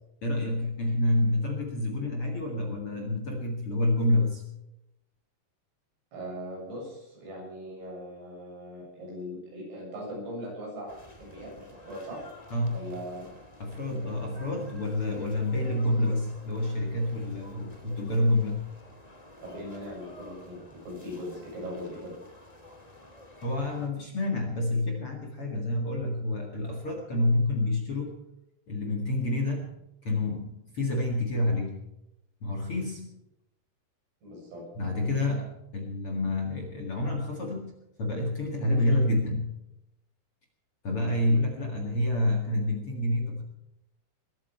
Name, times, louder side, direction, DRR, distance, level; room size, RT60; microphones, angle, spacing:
voice 1, 0.2-4.4 12.5-12.9 13.6-18.6 23.4-28.1 28.7-31.8 32.4-33.2 34.8-37.7 38.0-39.5 40.8-43.4, left 1 dB, 40° left, 1 dB, 2.3 m, -28 dB
voice 2, 6.1-12.2 12.6-13.3 19.4-22.2 34.2-34.6, equal, 75° right, -2 dB, 9.0 m, -40 dB
sound 1, 10.9-23.9, left 1 dB, 15° left, 1.4 m, -51 dB
21.0 x 13.5 x 4.5 m, 0.90 s
omnidirectional pair, 4.8 m